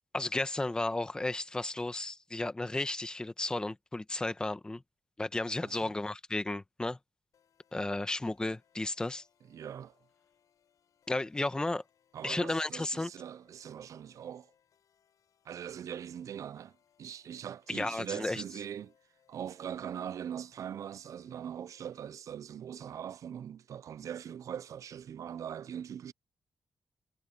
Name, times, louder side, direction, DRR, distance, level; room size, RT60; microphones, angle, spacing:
voice 1, 0.1-4.8 5.2-7.0 7.7-9.3 11.1-11.8 12.2-13.1 17.7-18.4, left 2 dB, 15° left, 1.0 m, -33 dB
sound 1, 7.3-22.2, left 8 dB, 85° left, 7.7 m, -72 dB
voice 2, 9.5-9.9 12.1-14.5 15.5-16.7 17.0-18.9 19.3-26.1, right 9 dB, 70° right, 0.4 m, -41 dB
wide cardioid pair, 140°, 6 cm